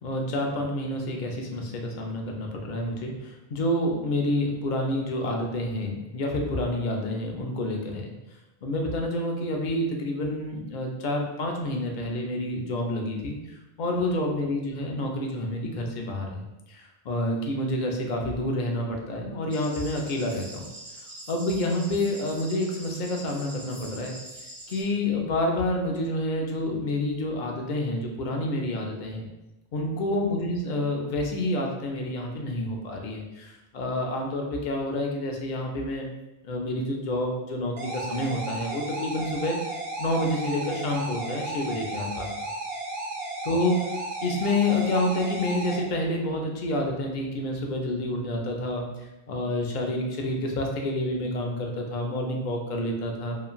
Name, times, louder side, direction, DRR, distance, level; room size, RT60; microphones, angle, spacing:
voice 1, 0.0-8.1 8.6-13.4 13.8-16.4 16.7-20.6 21.3-24.1 24.7-29.3 29.7-36.1 36.4-39.6 40.0-42.3 43.5-43.8 44.2-53.4, left 1 dB, 55° left, 1 dB, 0.6 m, -28 dB
sound 1, 19.5-24.8, right 1 dB, 35° right, 0.3 m, -44 dB
sound 2, 37.8-45.8, right 2 dB, 60° right, 0.8 m, -34 dB
2.9 x 2.4 x 2.3 m, 1.0 s
omnidirectional pair, 1.1 m